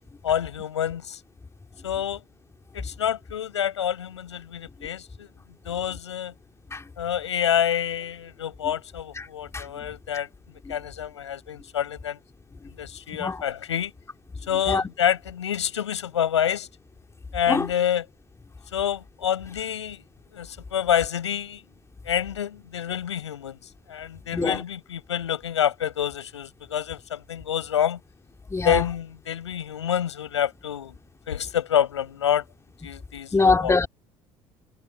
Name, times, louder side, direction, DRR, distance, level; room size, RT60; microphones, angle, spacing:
voice 1, 0.2-1.2 1.8-2.2 2.7-5.3 5.6-6.3 7.0-10.3 10.7-12.2 12.8-13.9 14.5-16.7 17.3-18.1 18.7-20.0 20.3-21.6 22.1-23.6 23.9-28.0 28.6-30.9 31.3-32.4 32.8-33.8, left 9 dB, 80° left, 7.1 m, -27 dB
voice 2, 28.5-28.8 33.3-33.9, left 3 dB, 20° left, 3.7 m, -22 dB
figure-of-eight pair, 60°, 15 cm